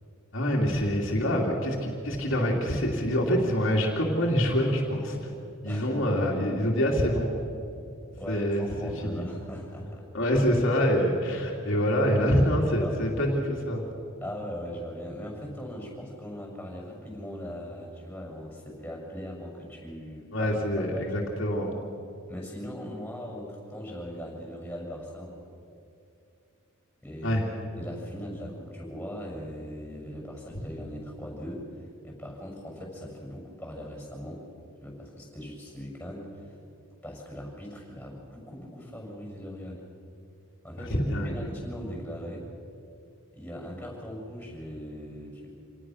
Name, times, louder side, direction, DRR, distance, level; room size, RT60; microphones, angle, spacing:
voice 1, 0.3-5.3 5.6-7.3 8.3-9.2 10.1-13.8 20.3-21.7 27.2-27.5 40.9-41.4, equal, 65° left, -2 dB, 2.7 m, -26 dB
voice 2, 5.6-6.0 8.2-10.0 12.8-13.0 14.2-21.2 22.3-25.3 27.0-27.4 27.7-34.4 34.8-36.5 37.0-39.8 40.6-42.5 43.3-45.5, equal, 5° left, -1 dB, 6.6 m, -39 dB
27.5 x 18.5 x 6.3 m, 2.6 s
head